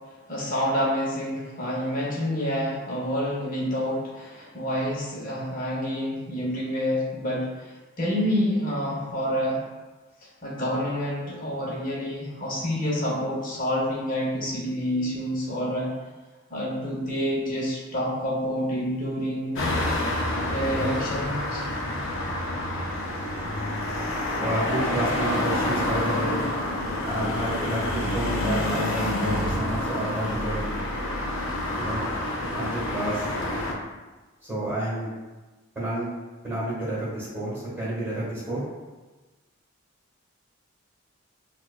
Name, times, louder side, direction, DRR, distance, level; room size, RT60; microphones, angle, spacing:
voice 1, 0.3-7.7 8.0-9.6 10.4-15.9 16.5-19.6 20.5-21.6, equal, 40° left, -5 dB, 1.0 m, -28 dB
sound 1, 19.6-33.7, left 1 dB, 65° left, 0.6 m, -28 dB
voice 2, 24.4-26.4 27.0-30.8 31.8-32.1 32.5-33.3 34.4-35.1 35.7-36.1 36.4-38.6, right 1 dB, 10° right, -9 dB, 1.5 m, -30 dB
4.5 x 2.4 x 2.4 m, 1.2 s
head